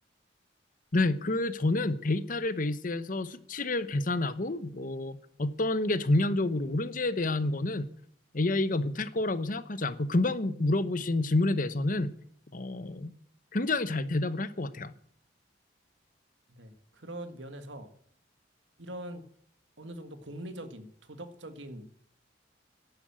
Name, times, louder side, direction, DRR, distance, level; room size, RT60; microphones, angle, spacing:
voice 1, 0.9-7.9 8.3-12.1 12.5-13.1 13.5-14.9, left 2 dB, 45° left, 1.0 m, -29 dB
voice 2, 16.5-17.9 18.8-19.2 19.8-21.9, right 1 dB, 80° right, 1.8 m, -43 dB
11.5 x 9.6 x 9.0 m
head